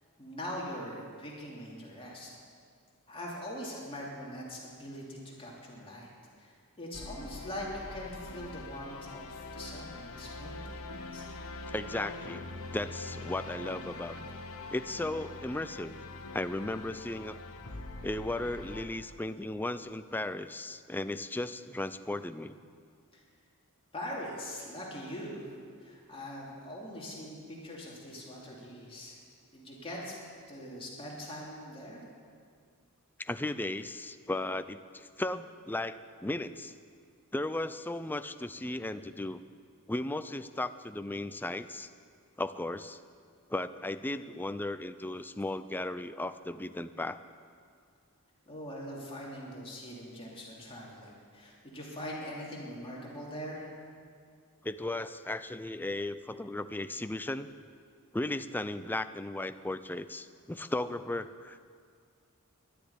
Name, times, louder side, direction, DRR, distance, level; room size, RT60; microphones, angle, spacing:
voice 1, 0.2-2.3 3.1-6.1 6.4-10.9 11.1-11.2 23.9-25.4 25.8-29.2 29.5-30.1 30.5-32.0 48.5-53.7, equal, 25° left, -4 dB, 2.9 m, -42 dB
sound 1, 6.9-18.9, left 2 dB, 70° left, 1.3 m, -43 dB
voice 2, 11.7-12.4 12.7-14.3 14.7-15.9 16.3-17.4 18.0-22.6 33.2-36.7 37.3-39.4 39.9-41.9 42.4-43.0 43.5-47.2 54.6-57.5 58.1-61.6, left 2 dB, 10° left, 11 dB, 0.4 m, -36 dB
12.0 x 10.0 x 9.5 m, 2.1 s
head